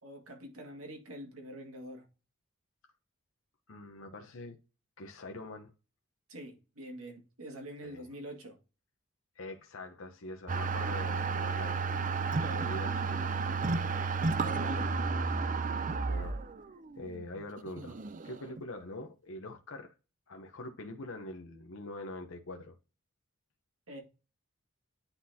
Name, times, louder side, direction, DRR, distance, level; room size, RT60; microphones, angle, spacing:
voice 1, 0.0-2.0 6.3-8.6 12.4-12.7 14.3-14.9 23.9-24.0, right 1 dB, 80° right, 2.2 m, -45 dB
voice 2, 3.7-4.6 5.0-5.7 7.8-8.1 9.4-12.0 12.5-13.3 16.1-16.4 17.0-19.9 20.3-22.7, left 2 dB, 70° left, 0.8 m, -44 dB
sound 1, 10.5-18.6, right 4 dB, 35° right, 0.5 m, -32 dB
9.9 x 4.1 x 2.8 m
head